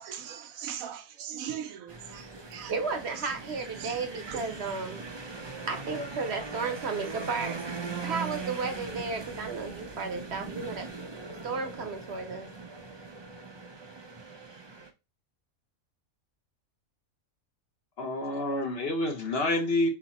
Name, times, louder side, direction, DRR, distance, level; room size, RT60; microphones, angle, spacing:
voice 1, 0.0-2.7 3.8-3.9 4.3-4.4 6.6-6.7, right 9 dB, 75° right, 1.1 m, -39 dB
sound 1, 1.9-14.9, right 4 dB, 40° right, 0.4 m, -40 dB
voice 2, 2.7-5.0 5.7-7.6 8.0-10.9 11.4-12.5, right 4 dB, 55° right, 1.0 m, -33 dB
voice 3, 18.0-19.9, left 1 dB, 50° left, 1.0 m, -28 dB
4.2 x 2.9 x 4.1 m
omnidirectional pair, 1.5 m